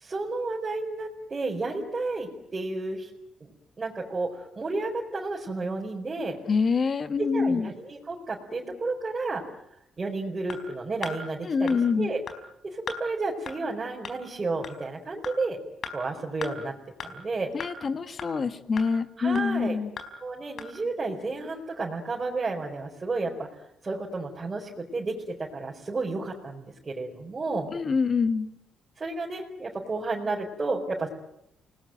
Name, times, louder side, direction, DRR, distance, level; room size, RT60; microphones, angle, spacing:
voice 1, 0.0-3.1 3.8-6.4 7.2-9.4 10.0-12.2 12.6-15.6 15.9-16.8 17.0-17.5 19.2-19.8 20.2-23.5 23.8-27.7 29.0-31.1, right 3 dB, 30° right, -2 dB, 4.7 m, -31 dB
voice 2, 6.5-7.7 11.4-12.1 17.5-19.9 27.7-28.5, left 5 dB, 40° left, 9 dB, 2.1 m, -26 dB
sound 1, 10.5-10.6 11.0-11.2 11.7-11.8 12.3-12.4 12.9-13.0 13.5-13.6 14.0-14.1 14.6-14.7 15.2-15.3 15.8-15.9 16.4-16.5 17.0-17.1 17.6-17.7 18.2-18.3 18.8-18.9 19.3-19.4 20.0-20.1 20.6-20.7, left 6 dB, 60° left, 4.4 m, -36 dB
29.0 x 20.0 x 9.2 m, 0.81 s
cardioid pair, 90°, 0 cm